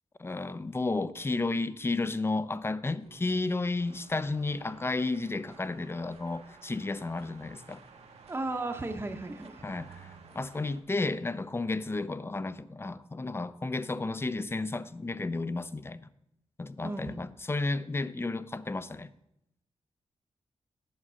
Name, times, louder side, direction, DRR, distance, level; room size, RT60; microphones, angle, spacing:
voice 1, 0.2-7.8 9.6-16.1 16.6-19.1, left 3 dB, 20° left, 0.5 m, -32 dB
sound 1, 3.0-10.8, right 4 dB, 65° right, 1.2 m, -57 dB
sound 2, 3.8-10.8, right 5 dB, 85° right, 1.3 m, -56 dB
voice 2, 8.3-9.6 16.8-17.2, right 2 dB, 20° right, 0.8 m, -35 dB
8.7 x 6.6 x 5.5 m
cardioid pair, 80°, 11 cm